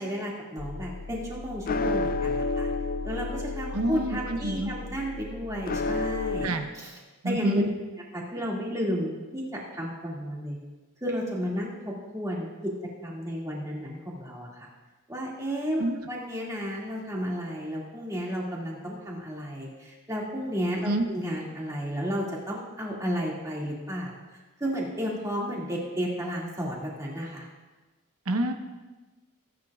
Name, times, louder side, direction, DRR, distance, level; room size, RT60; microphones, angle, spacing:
voice 1, 0.0-2.7 3.0-6.9 7.2-7.6 8.1-10.6 11.0-12.7 13.0-14.7 15.1-15.8 16.1-24.2 24.6-27.5, equal, 15° right, -4 dB, 2.2 m, -32 dB
sound 1, 0.6-6.5, left 3 dB, 40° left, 0.4 m, -31 dB
voice 2, 3.7-4.7 6.4-6.7 7.2-7.7 15.8-16.0 20.8-21.1 28.3-28.5, right 1 dB, 80° right, 6 dB, 0.9 m, -27 dB
19.0 x 9.5 x 2.4 m, 1.2 s
head